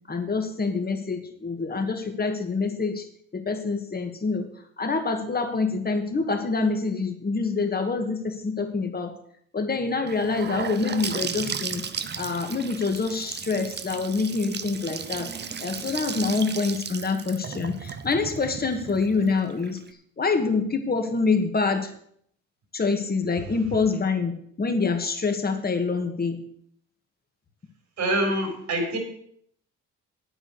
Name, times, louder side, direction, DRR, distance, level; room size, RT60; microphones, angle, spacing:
voice 1, 0.1-3.1 3.3-4.5 4.8-9.1 9.5-11.8 12.2-15.3 15.6-19.8 20.2-21.9 22.7-26.4, left 4 dB, 30° left, 6 dB, 2.0 m, -26 dB
Gurgling / Sink (filling or washing) / Bathtub (filling or washing), 10.1-19.9, right 6 dB, 35° right, 0.8 m, -35 dB
voice 2, 28.0-29.0, right 1 dB, 70° right, 3 dB, 4.2 m, -25 dB
9.0 x 9.0 x 6.5 m, 0.66 s
cardioid pair, 90°, 30 cm